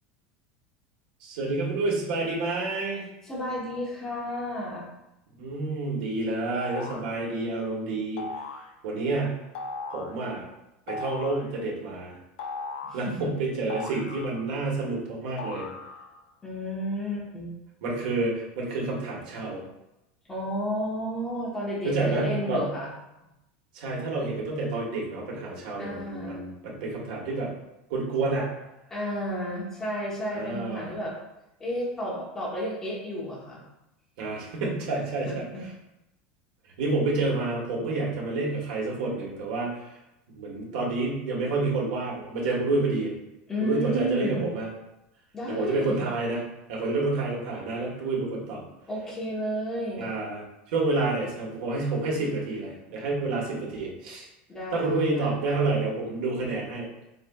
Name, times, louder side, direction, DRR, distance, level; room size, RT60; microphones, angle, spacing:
voice 1, 1.2-3.0 5.4-8.3 8.8-9.4 9.9-10.4 10.9-12.2 12.9-15.7 17.8-19.6 21.8-22.6 23.7-27.5 27.9-28.5 30.3-30.9 34.2-35.5 36.8-39.8 40.3-43.1 43.6-44.7 45.5-46.4 46.7-48.6 50.0-50.4 50.7-54.3 54.7-56.9, right 3 dB, 65° right, -2 dB, 1.3 m, -29 dB
voice 2, 3.2-4.9 12.8-13.3 16.4-17.5 20.3-22.9 25.8-26.4 28.9-31.1 31.6-33.6 35.2-35.6 43.5-44.5 45.3-46.0 48.9-50.1 54.5-55.4, equal, 10° left, -6 dB, 0.8 m, -32 dB
sound 1, 6.6-7.2 8.2-8.7 9.6-10.2 10.9-11.5 12.4-13.1 13.7-14.7 15.4-16.2, left 3 dB, 75° left, 0.4 m, -37 dB
4.4 x 4.1 x 2.2 m, 0.91 s
supercardioid pair, 180°, 5 cm